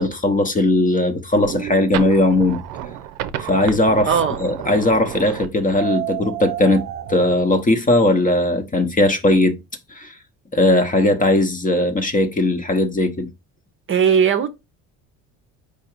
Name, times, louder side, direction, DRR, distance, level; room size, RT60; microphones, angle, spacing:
voice 1, 0.0-2.6 3.4-4.1 4.4-9.6 9.9-10.1 10.5-13.3, left 2 dB, 20° left, 0.7 m, -18 dB
sound 1, 1.3-7.5, right 12 dB, 80° right, 0.6 m, -30 dB
voice 2, 4.1-4.4 13.9-14.5, right 7 dB, 35° right, 0.6 m, -17 dB
4.8 x 2.5 x 4.4 m
supercardioid pair, 85°, 37 cm